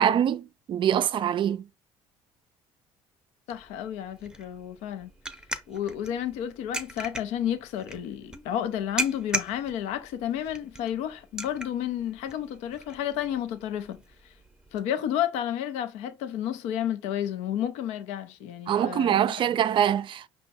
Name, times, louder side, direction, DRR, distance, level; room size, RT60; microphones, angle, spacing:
voice 1, 0.0-1.6 18.7-20.3, right 9 dB, 45° right, 0.4 m, -24 dB
voice 2, 3.5-5.1 5.7-14.3 14.7-19.2 19.5-19.6, left 10 dB, 75° left, 0.6 m, -31 dB
sound 1, 3.5-14.8, right 1 dB, 5° right, 0.8 m, -39 dB
5.2 x 2.2 x 4.1 m
supercardioid pair, 75°, 11 cm